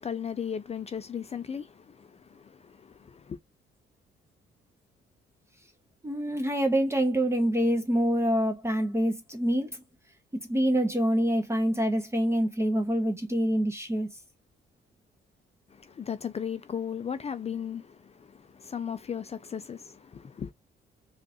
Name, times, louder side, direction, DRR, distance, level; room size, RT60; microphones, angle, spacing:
voice 1, 0.0-3.4 15.8-20.5, left 7 dB, 30° left, 0.4 m, -36 dB
voice 2, 6.0-9.8 10.4-14.1, equal, 15° right, 0.7 m, -26 dB
3.7 x 2.5 x 2.6 m
cardioid pair, 90°, 20 cm